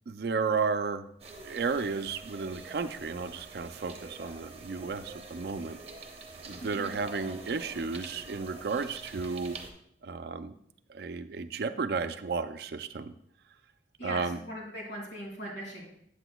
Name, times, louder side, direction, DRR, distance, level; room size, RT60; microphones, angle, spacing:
voice 1, 0.1-1.0 1.4-5.8 6.5-9.6 10.0-10.5 10.9-13.1 14.0-14.4, right 4 dB, 60° right, 10 dB, 0.4 m, -33 dB
sound 1, 1.2-9.7, right 3 dB, 35° right, 0.8 m, -46 dB
voice 2, 6.6-7.0 14.0-15.9, right 1 dB, 85° left, -2 dB, 2.7 m, -40 dB
8.4 x 7.9 x 2.2 m, 0.70 s
head